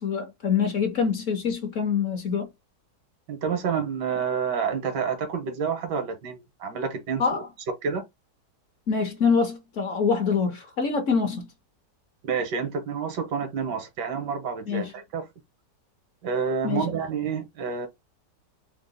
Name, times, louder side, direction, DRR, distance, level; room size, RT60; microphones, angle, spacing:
voice 1, 0.0-2.5 7.2-7.5 8.9-11.5 14.7-14.9 16.6-16.9, left 6 dB, 55° left, 0.9 m, -25 dB
voice 2, 3.3-7.4 7.8-8.0 12.3-15.3 16.2-17.9, right 6 dB, 85° right, 1.6 m, -29 dB
3.7 x 2.0 x 3.9 m
omnidirectional pair, 1.8 m